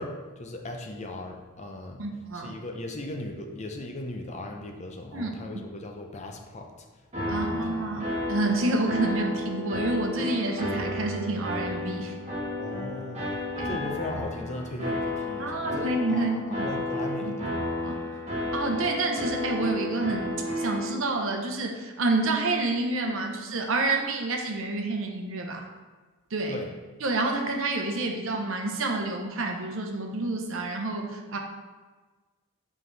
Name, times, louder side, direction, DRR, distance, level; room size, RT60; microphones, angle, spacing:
voice 1, 0.0-2.0 2.3-6.7 7.2-7.6 12.6-13.4 13.6-17.6 26.5-26.7, left 2 dB, 30° left, 2 dB, 0.6 m, -37 dB
voice 2, 2.0-2.6 5.1-5.4 7.3-12.2 13.6-13.8 15.4-16.7 17.2-17.3 17.8-18.0 18.5-25.7 26.3-26.6 27.0-31.4, right 2 dB, 60° right, 3 dB, 0.8 m, -28 dB
sound 1, 7.1-20.9, left 1 dB, 30° right, 1.4 m, -32 dB
7.6 x 4.8 x 3.3 m, 1.3 s
head